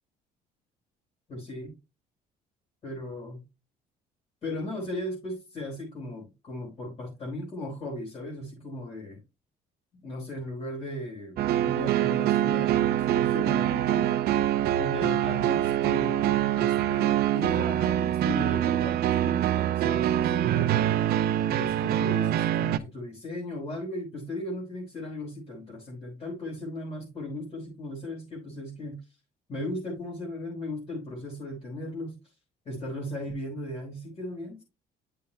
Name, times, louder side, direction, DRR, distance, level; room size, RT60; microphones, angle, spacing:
voice 1, 1.3-1.7 2.8-3.4 4.4-9.2 10.0-14.3 14.8-20.7 21.5-29.0 29.5-32.1 32.6-34.6, left 1 dB, 35° left, 4.3 m, -37 dB
sound 1, 11.4-22.8, right 12 dB, 65° right, 0.6 m, -25 dB
10.0 x 6.9 x 2.2 m
cardioid pair, 110°, 17 cm